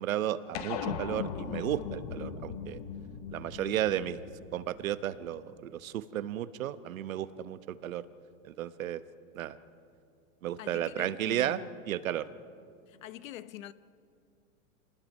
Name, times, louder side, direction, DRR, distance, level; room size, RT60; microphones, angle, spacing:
voice 1, 0.0-2.8 3.3-4.2 4.5-8.0 8.4-9.0 9.3-9.6 10.4-11.6 11.9-12.3, right 12 dB, 75° right, 1.0 m, -33 dB
sound 1, 0.5-5.3, left 7 dB, 30° left, 0.8 m, -39 dB
voice 2, 10.6-11.8 12.9-13.7, left 12 dB, 70° left, 0.9 m, -45 dB
27.5 x 20.0 x 5.4 m
supercardioid pair, 175°, 41 cm